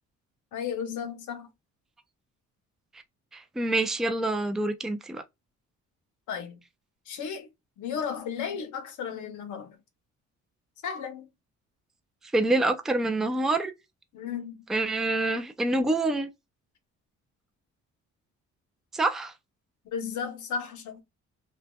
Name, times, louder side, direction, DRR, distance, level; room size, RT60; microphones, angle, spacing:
voice 1, 0.5-1.5 6.3-6.6 7.1-7.5 7.8-9.8 10.8-11.3 14.1-14.6 19.8-21.0, left 7 dB, 75° left, 0.8 m, -34 dB
voice 2, 3.3-5.2 12.3-13.7 14.7-16.3 18.9-19.3, right 2 dB, ahead, 0.3 m, -26 dB
2.7 x 2.1 x 2.2 m
cardioid pair, 90°, 30 cm